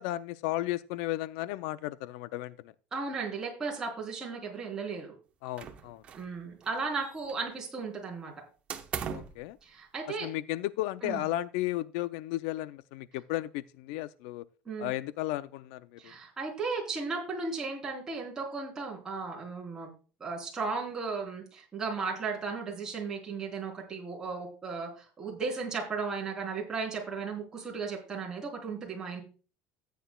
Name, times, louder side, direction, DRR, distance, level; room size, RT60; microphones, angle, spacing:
voice 1, 0.0-2.7 5.4-6.0 9.1-9.6 10.2-14.4 14.8-16.1, left 16 dB, 80° left, 0.4 m, -34 dB
voice 2, 2.9-5.1 6.1-8.3 9.6-10.3 11.0-11.2 14.6-14.9 16.0-19.9 20.2-24.9 25.2-29.2, right 4 dB, 15° right, 3.4 m, -35 dB
sound 1, 5.6-6.4 6.6-7.6 8.7-9.4, right 7 dB, 30° right, 0.9 m, -39 dB
14.0 x 9.3 x 2.3 m
cardioid pair, 165°, 4 cm